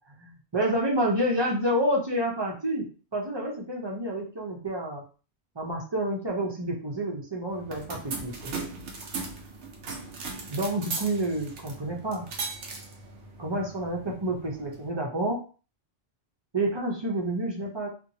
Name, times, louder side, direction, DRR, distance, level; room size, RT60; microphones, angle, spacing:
voice 1, 0.2-2.9 3.1-5.0 5.5-8.6 10.5-12.3 13.4-15.4 16.5-17.9, right 1 dB, 30° right, -1 dB, 0.7 m, -29 dB
sound 1, 7.5-14.9, right 4 dB, 85° right, 1.0 m, -38 dB
2.8 x 2.6 x 2.7 m, 0.37 s
omnidirectional pair, 1.1 m